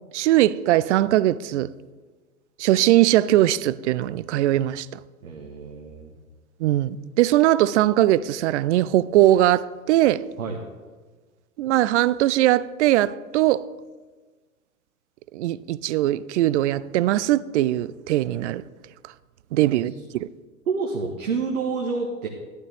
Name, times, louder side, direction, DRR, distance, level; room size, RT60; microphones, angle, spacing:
voice 1, 0.1-1.7 2.6-4.9 6.6-10.2 11.6-13.7 15.3-18.6 19.5-20.3, right 14 dB, 55° right, 0.5 m, -20 dB
voice 2, 5.2-6.1 10.4-10.6 20.7-22.3, right 4 dB, 75° right, 1.4 m, -28 dB
11.5 x 11.5 x 3.4 m
figure-of-eight pair, 100°, 43 cm